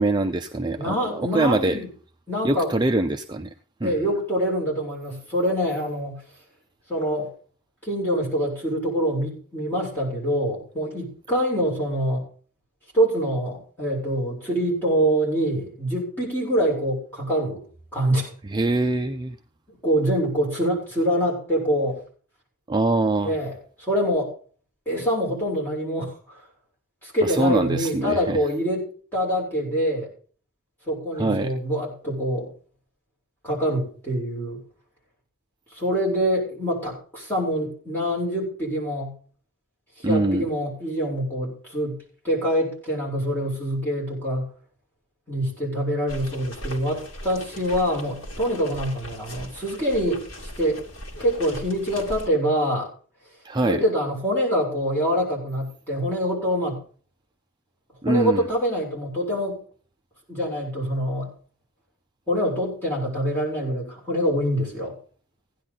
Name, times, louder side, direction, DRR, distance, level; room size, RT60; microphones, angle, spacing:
voice 1, 0.0-1.8 2.4-3.5 3.8-3.9 18.5-19.4 22.7-23.4 27.2-28.4 31.1-31.5 40.0-40.5 53.4-53.8 58.0-58.5, right 2 dB, 20° right, 6 dB, 0.5 m, -23 dB
voice 2, 0.8-1.9 2.3-2.7 3.8-6.2 6.9-7.3 7.8-12.2 12.9-17.6 17.9-18.3 19.7-22.0 23.2-24.3 24.9-26.4 27.0-30.1 30.9-32.5 33.4-34.6 35.7-39.2 40.0-42.0 42.2-44.5 45.3-50.8 51.2-52.9 53.6-56.8 58.1-59.6 60.3-61.3 62.3-65.0, equal, 10° left, -4 dB, 7.0 m, -25 dB
sound 1, 46.1-52.3, equal, 65° left, 3.3 m, -39 dB
16.5 x 10.5 x 4.1 m, 0.43 s
head